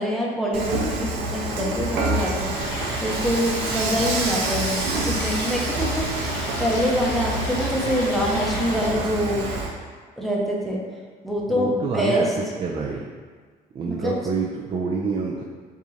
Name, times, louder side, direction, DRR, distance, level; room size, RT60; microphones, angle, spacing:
voice 1, 0.0-2.5 3.0-6.1 6.6-9.5 10.2-10.8 11.2-12.3 13.9-14.2, equal, ahead, -4 dB, 0.7 m, -25 dB
Dishes pots and pans / Frying (food), 0.5-9.7, right 2 dB, 80° right, 0.6 m, -27 dB
Stream, 2.5-8.9, left 1 dB, 85° left, 1.2 m, -35 dB
voice 2, 11.5-13.0 13.7-15.4, right 4 dB, 35° right, -2 dB, 0.4 m, -27 dB
4.7 x 2.5 x 2.7 m, 1.5 s
cardioid pair, 110°, 17 cm